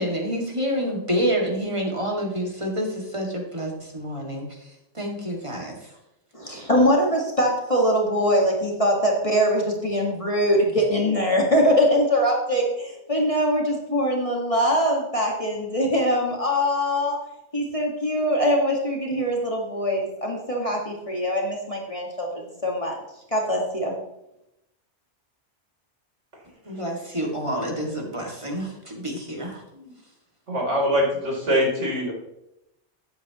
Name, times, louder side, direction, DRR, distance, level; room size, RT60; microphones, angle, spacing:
voice 1, 0.0-4.4 4.9-5.8 26.7-29.6, equal, 25° right, -1 dB, 2.4 m, -28 dB
voice 2, 6.3-17.2 17.5-23.0 23.3-24.0, equal, 30° left, -1 dB, 1.8 m, -22 dB
voice 3, 30.5-32.1, equal, 80° right, -3 dB, 3.8 m, -23 dB
13.5 x 9.6 x 3.0 m, 0.85 s
omnidirectional pair, 1.2 m